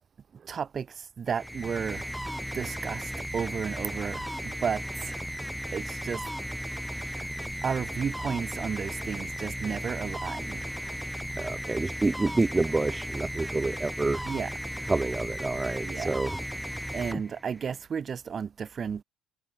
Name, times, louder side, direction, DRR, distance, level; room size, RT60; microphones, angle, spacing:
voice 1, 0.3-2.1 2.5-5.2 5.7-6.2 7.0-7.3 7.6-10.7 14.2-14.5 15.8-16.1 16.9-19.0, right 6 dB, 40° right, 3.2 m, -33 dB
sound 1, 1.3-17.8, equal, ahead, 7.1 m, -36 dB
voice 2, 11.4-14.2 14.9-16.3, right 3 dB, 20° right, 1.6 m, -28 dB
hypercardioid pair, 60°, 0 cm